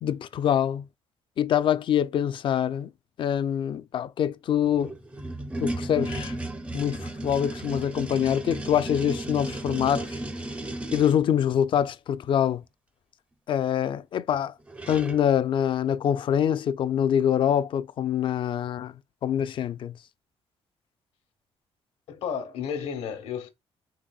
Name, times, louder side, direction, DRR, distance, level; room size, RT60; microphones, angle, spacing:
voice 1, 0.0-0.8 1.4-2.9 3.2-4.9 5.6-6.3 6.7-10.2 10.9-12.6 13.5-14.5 14.9-18.9 19.2-19.9, left 9 dB, 50° left, 0.3 m, -25 dB
sound 1, 4.7-11.2 14.3-14.4 14.7-15.3, right 1 dB, 10° right, 0.5 m, -34 dB
voice 2, 22.1-23.5, left 7 dB, 85° left, 1.0 m, -32 dB
4.0 x 3.4 x 2.3 m
cardioid pair, 115°, 11 cm